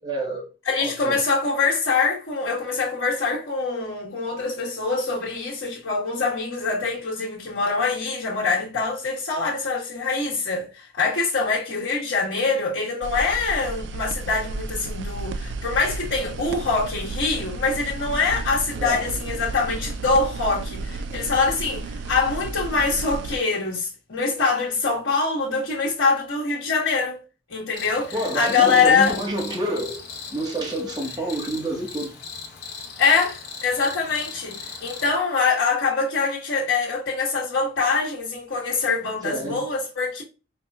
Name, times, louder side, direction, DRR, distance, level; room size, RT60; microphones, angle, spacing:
voice 1, 0.0-0.5 0.8-1.2 18.8-19.1 28.1-30.0 30.3-32.1 39.2-39.6, right 1 dB, 20° right, 0.9 m, -28 dB
voice 2, 0.6-27.2 27.5-29.2 33.0-40.2, left 4 dB, 85° left, 1.2 m, -24 dB
sound 1, 13.0-23.4, right 3 dB, 65° right, 0.3 m, -32 dB
Cricket, 27.7-35.2, left 5 dB, 55° left, 1.0 m, -38 dB
4.4 x 2.1 x 3.3 m
head